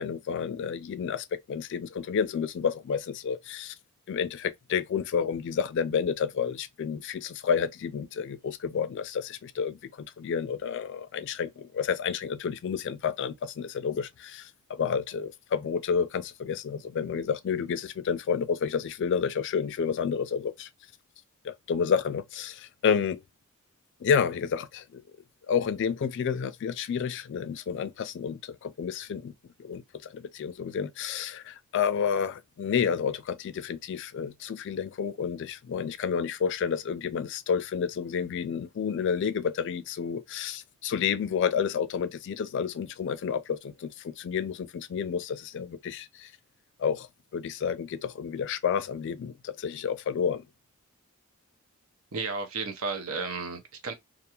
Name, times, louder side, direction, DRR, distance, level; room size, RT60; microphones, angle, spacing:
voice 1, 0.0-3.7 4.1-20.7 21.4-23.2 24.0-25.0 25.5-29.3 29.6-46.3 46.8-50.4, left 7 dB, 55° left, 0.3 m, -30 dB
voice 2, 52.1-53.9, right 4 dB, 70° right, 0.7 m, -33 dB
2.4 x 2.3 x 2.9 m
head